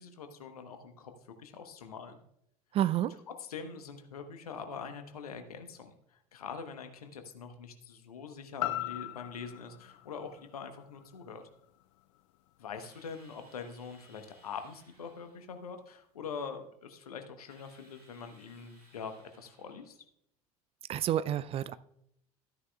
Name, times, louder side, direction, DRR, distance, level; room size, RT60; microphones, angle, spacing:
voice 1, 0.0-2.2 3.4-11.4 12.6-20.0, left 6 dB, 75° left, 1.0 m, -44 dB
voice 2, 2.7-3.2 20.9-21.7, right 11 dB, 30° right, 0.4 m, -29 dB
sound 1, 8.6-12.7 13.1-13.2, left 17 dB, 55° left, 0.4 m, -41 dB
Drill, 12.8-15.5 17.5-20.0, right 1 dB, 85° right, 1.9 m, -63 dB
13.5 x 9.7 x 2.3 m
figure-of-eight pair, 70°, 19 cm